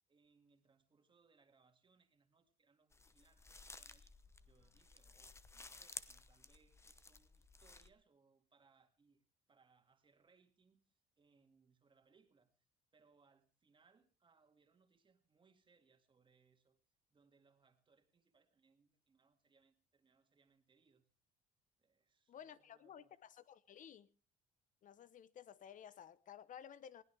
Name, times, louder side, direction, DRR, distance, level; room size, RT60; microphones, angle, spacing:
voice 1, 0.1-4.1 4.4-12.7 12.9-16.8 17.1-21.1 21.8-23.2, right 5 dB, 30° right, 2.3 m, -74 dB
sound 1, 2.9-7.9, left 3 dB, 15° left, 0.9 m, -55 dB
voice 2, 22.3-24.1 24.8-27.0, left 9 dB, 50° left, 1.0 m, -55 dB
21.5 x 16.0 x 3.5 m
cardioid pair, 110°, 17 cm